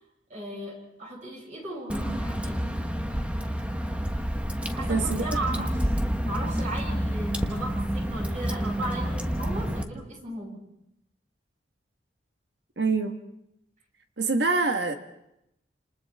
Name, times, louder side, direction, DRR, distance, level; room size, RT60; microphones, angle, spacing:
voice 1, 0.3-2.6 4.7-5.7 6.2-10.6, right 1 dB, 45° right, -2 dB, 7.9 m, -36 dB
Water / Drip, 1.9-9.8, equal, 5° right, 1.2 m, -29 dB
voice 2, 4.9-5.2 5.5-5.7 12.8-13.2 14.2-14.9, right 4 dB, 70° right, 5 dB, 1.5 m, -25 dB
29.0 x 27.5 x 3.5 m, 0.81 s
head